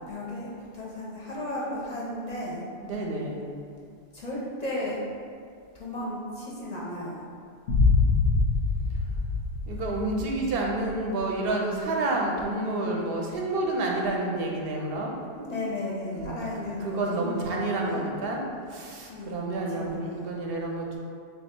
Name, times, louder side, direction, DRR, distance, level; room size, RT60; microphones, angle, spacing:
voice 1, 0.1-2.6 4.1-5.0 5.7-7.2 15.4-18.1 19.1-19.4 19.8-20.3, left 1 dB, 50° left, -5 dB, 0.6 m, -35 dB
voice 2, 2.8-3.5 9.7-15.1 16.1-16.5 16.8-18.4 18.7-21.0, right 2 dB, 65° right, -1 dB, 0.7 m, -29 dB
sound 1, 7.7-10.6, left 4 dB, 85° left, 0.8 m, -24 dB
3.4 x 2.3 x 4.3 m, 2.3 s
omnidirectional pair, 1.1 m